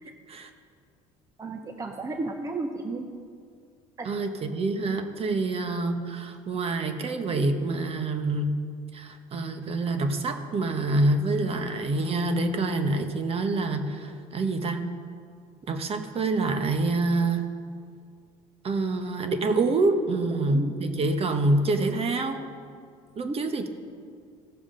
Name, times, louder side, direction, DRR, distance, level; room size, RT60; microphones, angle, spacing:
voice 1, 1.4-3.0 4.0-4.1 20.5-20.8 23.2-23.4, right 3 dB, 20° right, 4 dB, 0.8 m, -33 dB
voice 2, 4.0-8.5 8.9-14.9 15.7-17.5 18.6-22.4 23.2-23.7, right 2 dB, 40° right, 7 dB, 1.1 m, -26 dB
16.5 x 7.1 x 3.8 m, 2.3 s
supercardioid pair, 85°, 15 cm